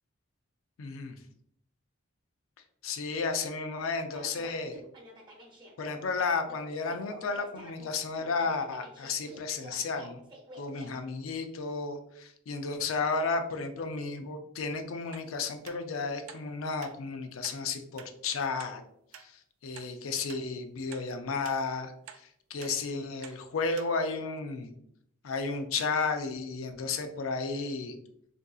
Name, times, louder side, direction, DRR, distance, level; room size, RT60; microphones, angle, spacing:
voice 1, 0.8-1.2 2.8-4.8 5.8-10.2 10.6-18.8 19.2-24.7 25.2-27.9, left 4 dB, 75° left, 7 dB, 0.4 m, -33 dB
sound 1, 4.1-10.9, right 1 dB, 20° right, 0.6 m, -49 dB
sound 2, 15.1-15.3 15.6-15.8 16.3-16.4 16.8-16.9 17.4-17.6 18.0-18.1 18.6-18.7 19.1-19.3 19.8-19.9 20.3-20.4 20.9-21.1 21.4-21.6 22.1-22.2 22.6-22.7 23.2-23.4 23.8-23.9 24.4-24.5, right 9 dB, 85° right, 0.3 m, -48 dB
3.5 x 2.6 x 2.3 m, 0.73 s
head